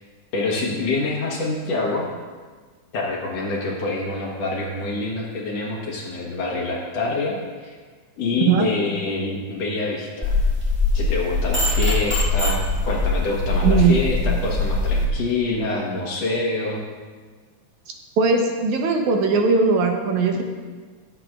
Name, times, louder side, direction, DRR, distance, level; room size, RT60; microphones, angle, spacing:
voice 1, 0.3-2.1 2.9-7.8 8.2-10.4 10.9-16.8, left 3 dB, 60° left, -2 dB, 2.1 m, -26 dB
sound 1, 10.2-15.1, left 2 dB, 15° right, 0.3 m, -22 dB
voice 2, 13.6-14.0 18.2-20.4, right 4 dB, 75° right, 2 dB, 2.1 m, -19 dB
18.5 x 7.7 x 2.4 m, 1.5 s
omnidirectional pair, 3.7 m